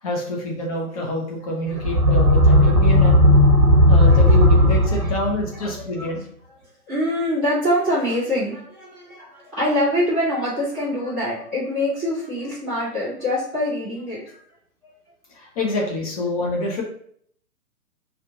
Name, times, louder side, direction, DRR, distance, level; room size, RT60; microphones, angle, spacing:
voice 1, 0.0-3.3 3.9-6.2 14.3-14.4 15.3-16.8, left 1 dB, 25° left, -1 dB, 0.9 m, -26 dB
sound 1, 1.7-5.5, left 1 dB, 85° right, 0.9 m, -14 dB
voice 2, 4.0-4.4 4.6-6.1 6.9-14.2 14.8-14.9, left 1 dB, ahead, -19 dB, 0.5 m, -25 dB
3.6 x 2.4 x 4.4 m, 0.64 s
figure-of-eight pair, 125°, 46 cm